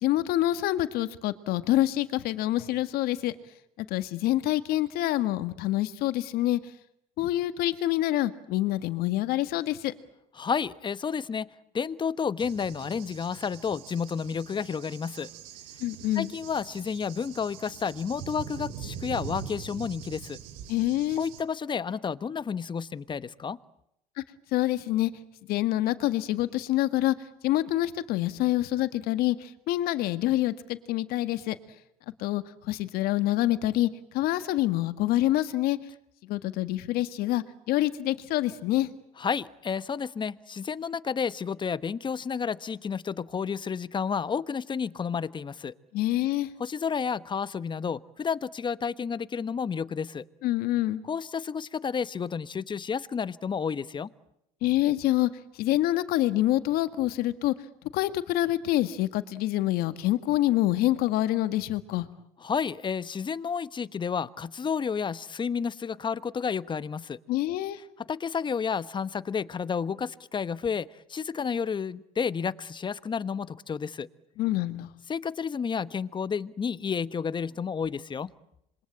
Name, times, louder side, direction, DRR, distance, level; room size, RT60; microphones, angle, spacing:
voice 1, 0.0-3.3 3.8-6.6 7.2-9.9 15.8-16.3 20.7-21.2 24.2-24.3 24.5-25.1 25.5-27.2 27.4-31.6 32.2-35.8 36.2-38.9 45.9-46.5 50.4-51.0 54.6-55.3 55.6-57.5 57.9-62.1 67.3-67.8 74.4-74.9, left 15 dB, 60° left, 12 dB, 1.8 m, -26 dB
voice 2, 10.4-11.5 11.7-15.3 16.2-20.4 21.2-23.6 39.2-45.7 46.6-50.2 51.1-54.1 62.4-67.2 68.1-74.1 75.1-78.3, left 6 dB, 25° left, 16 dB, 1.1 m, -31 dB
Cricket / Thunder, 12.4-21.4, right 8 dB, 65° right, 3.3 m, -43 dB
26.5 x 23.5 x 8.7 m, 0.78 s
hypercardioid pair, 80°, 18 cm